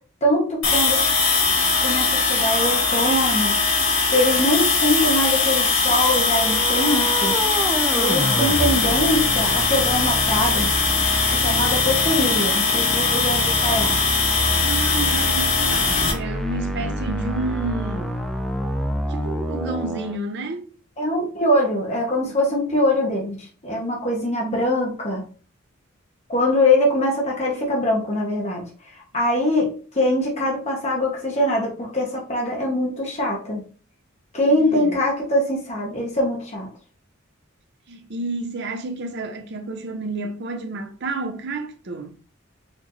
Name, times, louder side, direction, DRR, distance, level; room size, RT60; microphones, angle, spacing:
voice 1, 0.2-1.0 1.8-3.6 4.1-7.4 7.9-10.7 11.3-14.0 21.0-23.4 23.6-25.2 26.3-28.7 29.1-33.6 34.3-36.7, left 1 dB, 35° left, 0.9 m, -22 dB
sound 1, 0.6-16.1, left 4 dB, 70° left, 1.6 m, -21 dB
sound 2, 6.3-20.2, equal, ahead, 0.4 m, -28 dB
voice 2, 14.6-18.2 19.1-20.7 22.2-22.3 34.5-35.0 37.9-42.1, right 2 dB, 55° right, 0.6 m, -30 dB
4.4 x 2.6 x 3.0 m
head